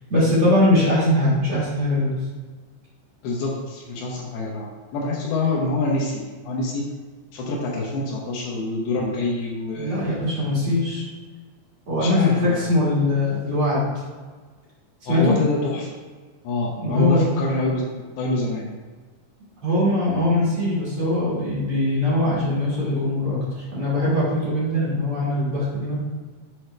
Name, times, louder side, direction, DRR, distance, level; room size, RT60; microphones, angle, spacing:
voice 1, 0.1-2.2 9.7-11.0 11.9-13.8 15.1-15.3 16.8-17.3 19.6-23.4 23.7-26.0, left 1 dB, 55° right, -8 dB, 1.6 m, -21 dB
voice 2, 3.2-6.9 7.3-10.0 10.6-10.7 12.0-12.7 15.1-15.9 16.4-17.8 18.2-18.7, left 2 dB, 75° left, -2 dB, 2.4 m, -26 dB
7.9 x 4.6 x 3.2 m, 1.4 s
omnidirectional pair, 5.5 m